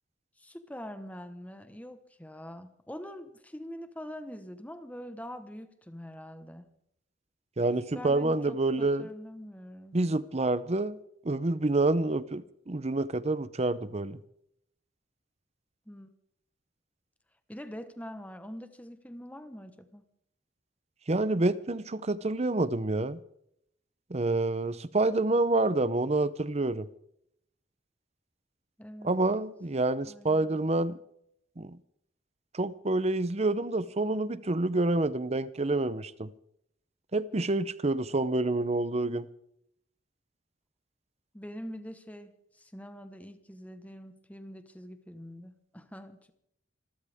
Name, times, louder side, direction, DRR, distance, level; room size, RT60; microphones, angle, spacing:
voice 1, 0.4-6.7 7.9-10.0 15.9-16.1 17.5-20.0 28.8-29.3 30.0-30.7 41.3-46.3, equal, 10° left, 1.2 m, -44 dB
voice 2, 7.6-9.1 9.9-11.0 11.2-14.2 21.1-23.2 24.1-26.9 29.0-31.0 31.6-31.8 32.5-36.3 37.1-39.3, right 2 dB, 35° right, 0.7 m, -28 dB
26.5 x 13.5 x 3.6 m
head